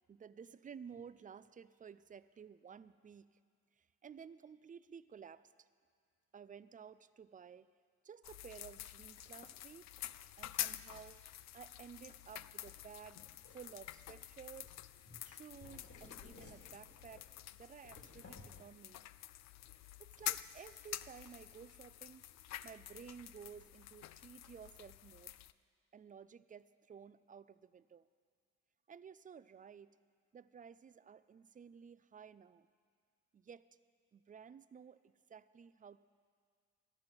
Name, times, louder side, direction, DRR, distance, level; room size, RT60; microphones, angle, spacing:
voice 1, 0.1-3.3 3.8-5.4 6.3-7.7 8.0-9.9 10.4-11.2 11.5-13.2 13.5-14.8 15.2-19.0 20.0-22.2 22.6-25.4 25.9-28.1 28.9-29.9 30.3-32.7 33.3-33.7 34.1-35.0 35.3-36.0, right 7 dB, 25° right, 15 dB, 0.4 m, -54 dB
sound 1, 8.2-25.5, left 13 dB, 65° left, 0.4 m, -48 dB
sound 2, 9.1-16.1, left 2 dB, 30° left, 1.4 m, -69 dB
sound 3, 13.4-13.9 14.6-15.0 15.2-15.4 15.6-17.2 17.8-18.6, left 3 dB, 45° left, 2.2 m, -58 dB
13.5 x 11.0 x 6.0 m, 2.1 s
cardioid pair, 90°, 30 cm